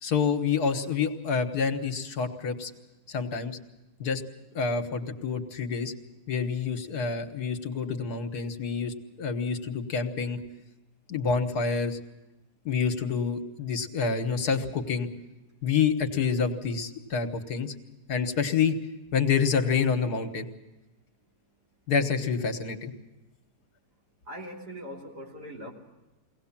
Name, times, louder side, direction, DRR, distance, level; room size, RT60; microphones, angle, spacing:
voice 1, 0.0-2.7 3.1-3.6 4.0-4.2 4.5-5.9 6.3-10.4 11.1-12.0 12.7-15.1 15.6-17.7 18.1-18.7 19.1-20.5 21.9-22.9, left 6 dB, 75° left, 6 dB, 1.9 m, -27 dB
voice 2, 24.2-25.7, equal, 80° right, -2 dB, 3.8 m, -41 dB
23.0 x 18.0 x 7.3 m, 1.1 s
omnidirectional pair, 1.7 m